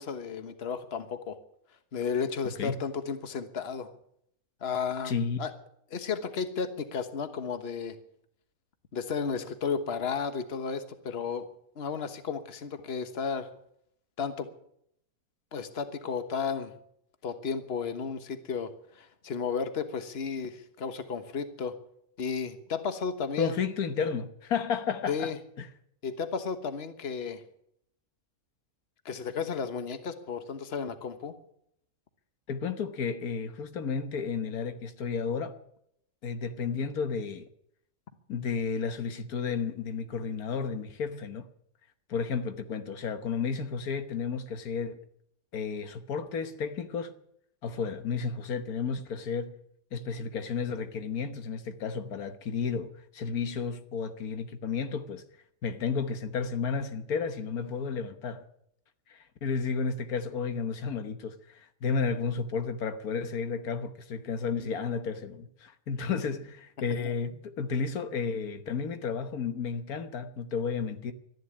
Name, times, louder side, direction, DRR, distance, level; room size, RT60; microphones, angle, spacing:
voice 1, 0.0-1.4 1.9-3.9 4.6-5.1 5.4-5.5 5.9-8.0 8.9-11.5 11.8-13.5 14.2-14.5 15.5-16.7 17.2-21.7 22.2-23.6 25.1-25.4 26.0-27.4 29.0-31.3 67.0-67.1, left 6 dB, 45° left, 1.4 m, -33 dB
voice 2, 2.4-2.8 5.0-5.4 23.4-25.3 25.6-25.7 32.5-35.6 36.2-37.5 38.3-41.5 42.1-45.0 45.5-47.1 47.6-49.5 49.9-55.2 55.6-58.4 59.1-71.1, left 5 dB, 90° left, 1.7 m, -32 dB
13.0 x 11.0 x 9.6 m
omnidirectional pair, 1.5 m